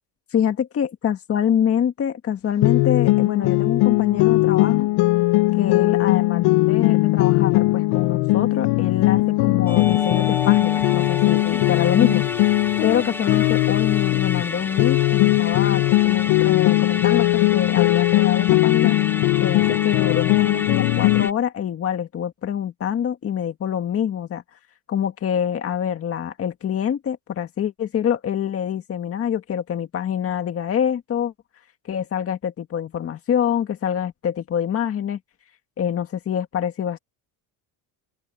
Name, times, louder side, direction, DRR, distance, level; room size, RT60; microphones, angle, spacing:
voice 1, 0.3-4.9 5.5-12.2 12.8-19.0 19.4-24.4 24.9-31.3 31.9-35.2 35.8-37.0, left 9 dB, 35° left, 1.9 m, -25 dB
sound 1, 2.6-14.5 14.8-21.3, left 20 dB, 75° left, 0.7 m, -19 dB
Musical instrument, 9.7-21.3, left 2 dB, 5° left, 0.7 m, -31 dB
open air
cardioid pair, 145°, 40 cm